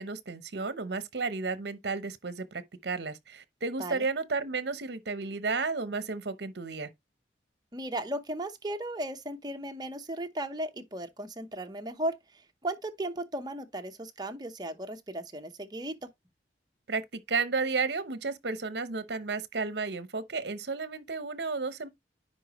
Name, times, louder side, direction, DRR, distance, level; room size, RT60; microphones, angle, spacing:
voice 1, 0.0-6.9 16.9-21.9, right 4 dB, 65° right, 0.8 m, -33 dB
voice 2, 7.7-12.1 12.6-16.0, right 1 dB, 25° right, 0.9 m, -36 dB
10.0 x 4.1 x 3.0 m
head